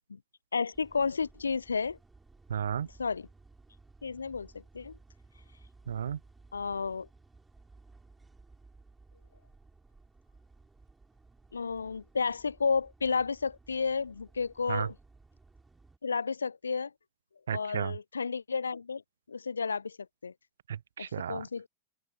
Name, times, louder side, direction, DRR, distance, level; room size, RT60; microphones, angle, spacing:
voice 1, 0.5-2.0 3.0-3.3 4.0-5.0 6.5-7.1 11.5-15.0 16.0-16.9 17.5-19.0 19.3-20.0 20.2-20.3 21.0-21.7, left 5 dB, 75° left, 0.6 m, -32 dB
sound 1, 0.7-16.0, right 3 dB, 10° right, 8.0 m, -58 dB
voice 2, 2.5-2.9 5.9-6.2 14.7-14.9 17.5-17.9 20.7-21.4, right 8 dB, 65° right, 0.4 m, -33 dB
figure-of-eight pair, 90°, 0 cm